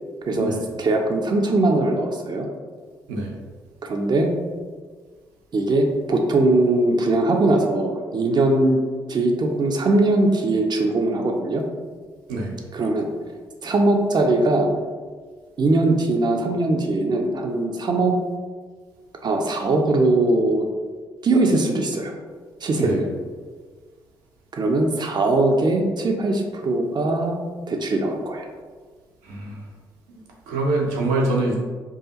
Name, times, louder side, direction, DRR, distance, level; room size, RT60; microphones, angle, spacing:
voice 1, 0.3-2.5 3.8-4.3 5.5-8.8 9.1-11.6 12.7-13.1 13.6-14.7 15.6-18.1 19.2-20.7 21.2-22.1 22.6-23.1 24.5-27.4 27.7-28.5, right 2 dB, 40° right, 2 dB, 0.6 m, -21 dB
voice 2, 29.2-29.6 30.1-30.2 30.5-31.6, right 2 dB, 70° right, -2 dB, 0.7 m, -24 dB
4.7 x 2.4 x 2.9 m, 1.5 s
figure-of-eight pair, 40°, 11 cm